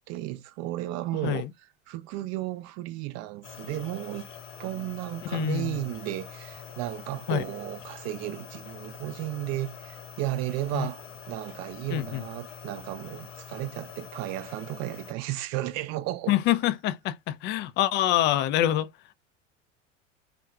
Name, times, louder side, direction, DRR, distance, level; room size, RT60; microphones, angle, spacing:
voice 1, 0.1-1.5 1.9-4.3 4.6-16.3, right 16 dB, 45° right, 0.6 m, -34 dB
sound 1, 3.4-15.1, left 8 dB, 75° left, 0.8 m, -45 dB
voice 2, 5.3-5.8 7.3-7.4 10.7-10.9 11.9-12.2 16.3-18.9, left 13 dB, 30° left, 0.4 m, -25 dB
3.5 x 2.1 x 2.3 m
figure-of-eight pair, 75°, 36 cm